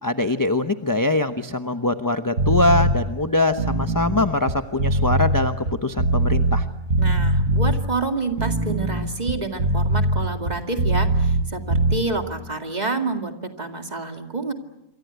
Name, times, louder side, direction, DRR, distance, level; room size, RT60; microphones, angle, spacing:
voice 1, 0.0-5.6 5.8-6.6, left 2 dB, 15° left, 8 dB, 0.7 m, -22 dB
sound 1, 2.4-3.0 3.5-6.6 6.9-7.8 8.3-11.4 11.7-12.0, right 2 dB, 45° right, 1.8 m, -21 dB
voice 2, 7.0-14.5, right 3 dB, 25° right, 5 dB, 2.2 m, -28 dB
27.5 x 24.0 x 8.1 m, 0.93 s
omnidirectional pair, 1.7 m